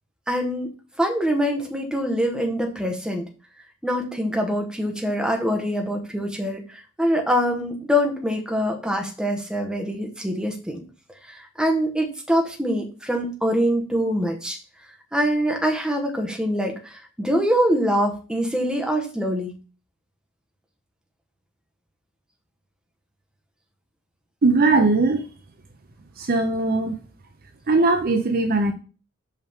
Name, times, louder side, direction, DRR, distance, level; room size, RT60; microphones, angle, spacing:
voice 1, 0.3-0.7 1.0-3.3 3.8-10.8 11.3-14.6 15.1-19.5, equal, 5° right, 2 dB, 1.2 m, -24 dB
voice 2, 24.4-25.2 26.2-26.9 27.7-28.7, right 3 dB, 45° right, 7 dB, 0.6 m, -19 dB
5.9 x 5.6 x 3.6 m, 0.35 s
head